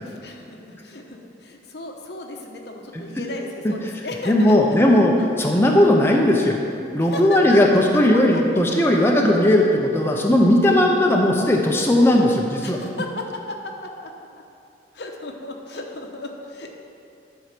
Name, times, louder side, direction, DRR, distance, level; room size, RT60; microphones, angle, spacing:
voice 1, 0.1-4.8 5.2-5.3 7.0-7.6 8.1-8.4 12.6-14.1 14.9-16.7, left 2 dB, 75° left, 2 dB, 1.0 m, -34 dB
voice 2, 4.3-6.6 6.9-12.8, left 1 dB, 15° left, 0 dB, 0.7 m, -17 dB
11.0 x 4.7 x 6.0 m, 2.7 s
head